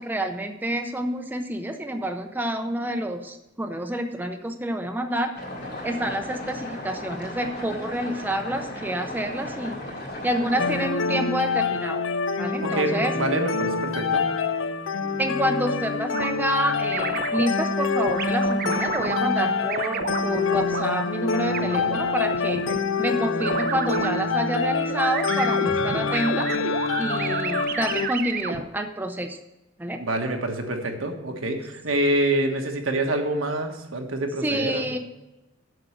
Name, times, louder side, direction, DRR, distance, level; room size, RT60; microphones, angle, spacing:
voice 1, 0.0-5.3 5.8-9.8 10.2-12.0 12.4-13.1 15.2-22.7 23.0-26.5 27.0-29.4 29.8-30.0 34.4-35.0, right 1 dB, 10° right, 5 dB, 0.6 m, -28 dB
sound 1, 5.3-10.9, left 1 dB, 55° left, 2.9 m, -35 dB
sound 2, 10.6-28.1, left 4 dB, 70° left, 0.6 m, -26 dB
voice 2, 12.6-14.2 30.0-34.8, right 1 dB, 80° right, 3 dB, 1.4 m, -26 dB
sound 3, 16.1-16.3 16.9-17.5 18.0-19.2 19.7-20.8 21.5-22.8 23.4-24.1 24.9-28.6, right 6 dB, 50° right, 0.6 m, -31 dB
7.8 x 6.2 x 7.7 m, 0.98 s
head